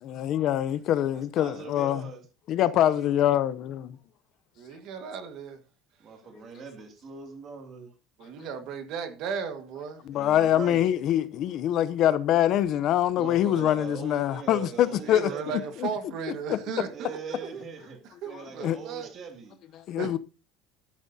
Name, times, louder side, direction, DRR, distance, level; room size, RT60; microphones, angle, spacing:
voice 1, 0.0-2.1 2.5-3.9 10.1-15.3 15.8-15.9 16.5-16.6 18.3-18.8 19.7-20.2, left 11 dB, 45° left, 0.6 m, -24 dB
voice 2, 1.1-2.2 2.8-3.4 6.0-7.9 10.1-10.8 13.1-15.7 16.9-19.6, right 5 dB, 35° right, 2.4 m, -42 dB
voice 3, 4.6-5.6 8.2-10.0 10.4-10.5 15.0-17.7 18.0-19.2 20.0-20.2, right 6 dB, 50° right, 1.5 m, -36 dB
13.0 x 11.0 x 2.7 m
cardioid pair, 165°, 0 cm